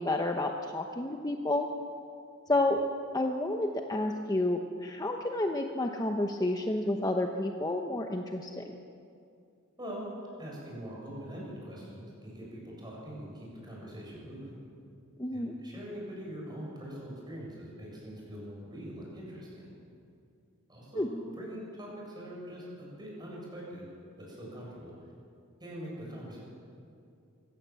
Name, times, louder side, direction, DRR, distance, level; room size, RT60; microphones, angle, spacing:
voice 1, 0.0-1.7 2.5-2.8 3.1-8.6 15.2-15.5 20.9-21.1, left 2 dB, 20° left, 3 dB, 0.9 m, -30 dB
voice 2, 9.8-10.1 10.4-14.6 15.3-19.7 20.7-23.9 24.2-24.9 25.6-26.4, equal, 20° right, -4 dB, 7.7 m, -43 dB
25.0 x 16.5 x 7.7 m, 2.5 s
head